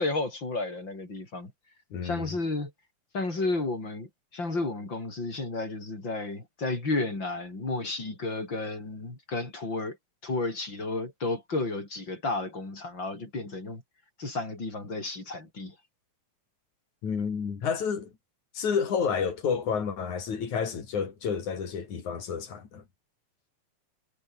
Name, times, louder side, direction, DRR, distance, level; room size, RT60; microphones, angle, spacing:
voice 1, 0.0-1.5 2.0-2.7 3.1-10.0 10.2-13.8 14.2-15.8, left 2 dB, 35° left, 7.1 m, -32 dB
voice 2, 1.9-2.3 17.0-18.1 18.5-22.8, left 6 dB, 80° left, 5.0 m, -30 dB
omnidirectional pair, 3.3 m